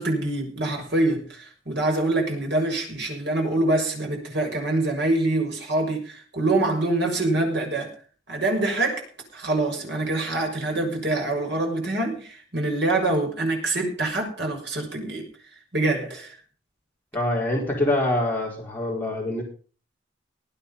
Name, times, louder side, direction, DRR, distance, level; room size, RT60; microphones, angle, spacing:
voice 1, 0.0-7.9 8.3-15.3 15.7-16.4, right 2 dB, 55° right, 1 dB, 6.6 m, -25 dB
voice 2, 17.1-19.4, left 1 dB, 10° left, -3 dB, 4.8 m, -25 dB
20.5 x 9.1 x 5.6 m, 0.39 s
head